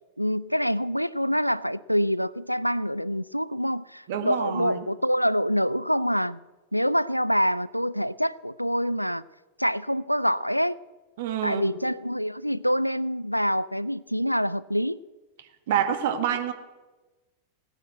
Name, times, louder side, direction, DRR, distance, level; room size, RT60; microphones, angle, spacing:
voice 1, 0.2-6.4 6.7-9.2 9.6-10.8 11.4-15.0, equal, 90° left, 19 dB, 0.4 m, -26 dB
voice 2, 4.1-4.8 11.2-11.7 15.7-16.5, right 9 dB, 55° right, 8 dB, 1.7 m, -27 dB
18.0 x 9.8 x 7.8 m, 1.2 s
figure-of-eight pair, 90°, 0 cm